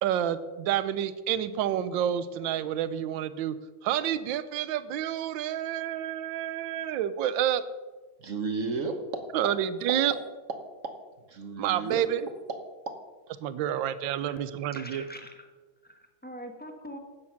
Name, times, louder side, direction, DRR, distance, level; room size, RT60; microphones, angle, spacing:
voice 1, 0.0-3.6 3.8-7.6 9.3-10.1 11.6-12.3 13.4-15.0, right 10 dB, 75° right, 14 dB, 1.4 m, -29 dB
voice 2, 8.2-9.2 10.8-10.9 11.3-12.1 12.5-12.6 12.9-13.0, right 4 dB, 45° right, 7 dB, 1.2 m, -33 dB
voice 3, 14.1-15.5 15.8-17.0, equal, 5° left, 3 dB, 0.9 m, -44 dB
13.0 x 8.8 x 5.8 m, 1.3 s
omnidirectional pair, 2.2 m